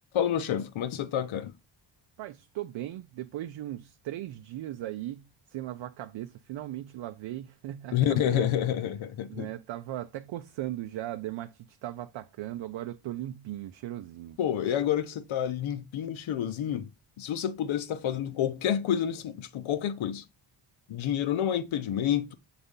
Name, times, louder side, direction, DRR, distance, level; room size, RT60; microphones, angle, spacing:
voice 1, 0.1-1.5 7.9-9.5 14.4-16.9 17.2-20.2 20.9-22.3, left 10 dB, 85° left, 0.8 m, -29 dB
voice 2, 2.2-8.5 9.3-14.4, right 14 dB, 75° right, 0.6 m, -38 dB
6.9 x 4.0 x 3.7 m
cardioid pair, 115°, 47 cm